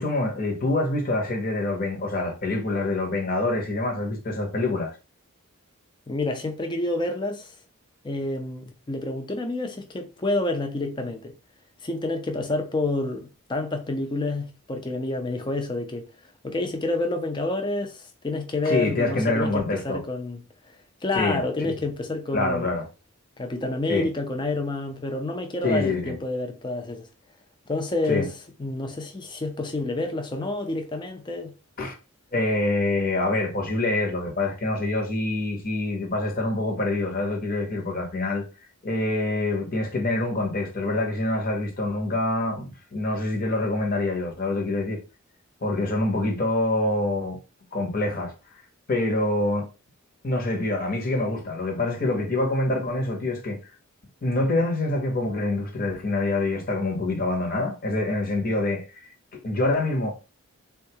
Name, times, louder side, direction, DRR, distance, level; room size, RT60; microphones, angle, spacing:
voice 1, 0.0-4.9 18.6-20.0 21.1-21.4 21.7-21.8 22.3-22.9 23.9-24.1 25.6-26.1 28.1-28.3 31.8-31.9 32.3-38.4 38.8-45.0 45.6-47.4 47.7-48.3 48.9-49.7 50.2-53.6 54.2-60.1, left 2 dB, 40° left, 0.8 m, -26 dB
voice 2, 6.1-7.5 8.0-11.3 11.8-16.0 16.4-22.7 23.4-27.1 27.7-31.5, left 2 dB, 20° left, 0.5 m, -29 dB
3.6 x 2.3 x 2.7 m
head